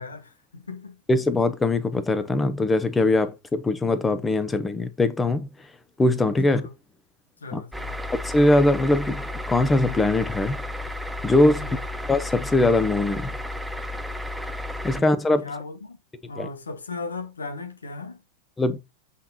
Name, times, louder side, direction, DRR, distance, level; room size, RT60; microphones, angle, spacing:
voice 1, 0.0-1.0 6.5-6.7 7.4-7.9 11.6-11.8 14.9-15.0 15.4-16.0 16.3-18.2, left 3 dB, 90° left, 1.3 m, -37 dB
voice 2, 1.1-5.5 6.0-6.7 7.5-7.6 8.2-10.6 11.2-11.7 12.1-13.3 14.8-15.4 16.4-16.5 18.6-18.8, left 2 dB, 15° left, 1.0 m, -21 dB
sound 1, 7.7-15.0, left 1 dB, 5° right, 0.7 m, -33 dB
8.5 x 3.7 x 4.2 m
hypercardioid pair, 100°, 0 cm